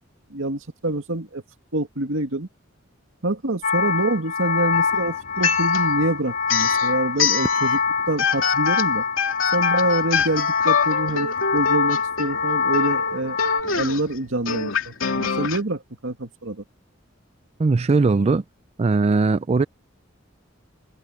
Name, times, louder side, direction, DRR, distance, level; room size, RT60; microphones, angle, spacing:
voice 1, 0.3-1.4 1.7-2.5 3.2-7.8 8.1-9.0 9.5-16.6, right 2 dB, 75° right, 2.3 m, -26 dB
sound 1, 3.6-13.6, left 5 dB, 40° left, 1.0 m, -24 dB
sound 2, 4.7-6.0 6.4-7.8 8.2-15.6, left 6 dB, 90° left, 2.7 m, -25 dB
Fireworks, 7.4-10.5, equal, 15° left, 7.2 m, -40 dB
voice 2, 17.6-18.4 18.8-19.6, right 3 dB, 30° right, 0.4 m, -19 dB
head